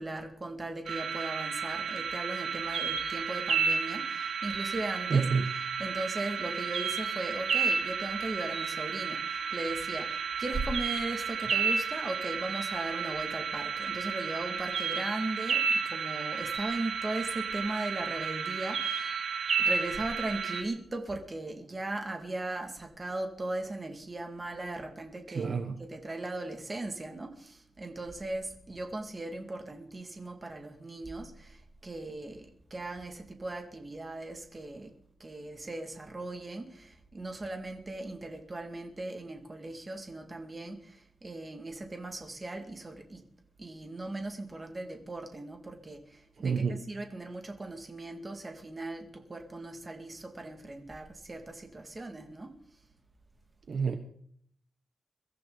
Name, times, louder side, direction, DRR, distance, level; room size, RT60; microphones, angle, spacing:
voice 1, 0.0-5.3 5.8-19.2 19.6-34.9 35.2-43.2 43.6-52.5, right 2 dB, 25° right, 4 dB, 2.2 m, -38 dB
sound 1, 0.9-20.6, right 6 dB, 70° right, 2.9 m, -32 dB
voice 2, 5.1-5.4 25.3-25.8 46.4-46.8 53.7-54.0, right 5 dB, 50° right, 7 dB, 1.1 m, -28 dB
23.0 x 14.0 x 4.0 m, 0.64 s
wide cardioid pair, 165°, 0 cm